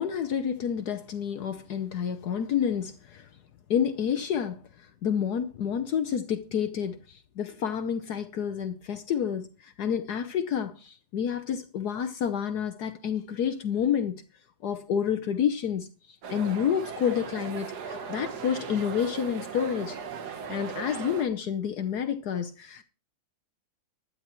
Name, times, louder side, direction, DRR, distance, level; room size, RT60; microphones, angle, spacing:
voice 1, 0.0-3.3 3.7-14.2 14.6-15.9 16.3-20.0 20.5-22.8, left 8 dB, 65° left, 1.3 m, -29 dB
sound 1, 16.2-21.2, right 6 dB, 65° right, 1.7 m, -38 dB
15.5 x 11.5 x 3.1 m
omnidirectional pair, 1.9 m